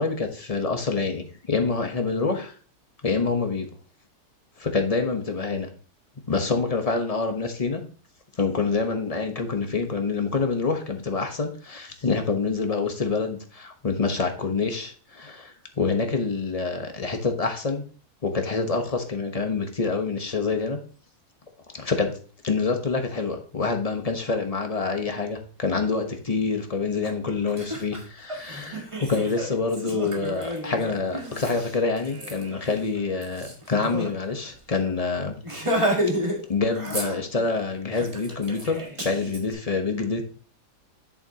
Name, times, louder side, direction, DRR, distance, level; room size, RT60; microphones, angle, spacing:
voice 1, 0.0-2.5 3.0-3.7 4.6-5.7 6.3-7.9 8.4-17.8 18.2-20.8 21.7-22.1 22.4-35.4 36.5-40.2, left 4 dB, 25° left, 4 dB, 1.0 m, -26 dB
Laughter, 27.0-27.1 27.5-34.1 34.4-34.6 34.8-35.0 35.4-36.4 36.7-37.5 37.9-39.4, equal, 20° right, 1.6 m, -31 dB
8.5 x 7.0 x 2.9 m, 0.39 s
omnidirectional pair, 1.7 m